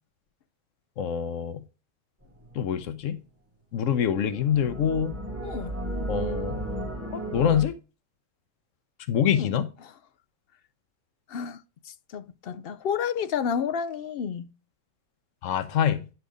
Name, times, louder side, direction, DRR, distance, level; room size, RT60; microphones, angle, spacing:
voice 1, 1.0-1.6 2.5-3.2 3.7-5.1 6.1-6.7 7.1-7.7 9.1-9.7 15.4-16.0, left 8 dB, 85° left, 1.1 m, -25 dB
sound 1, 2.2-3.1 4.3-7.6, right 1 dB, 10° right, 2.6 m, -34 dB
voice 2, 5.4-5.8 9.4-9.9 11.3-14.5, left 7 dB, 60° left, 0.7 m, -31 dB
10.5 x 4.6 x 4.9 m
omnidirectional pair, 1.3 m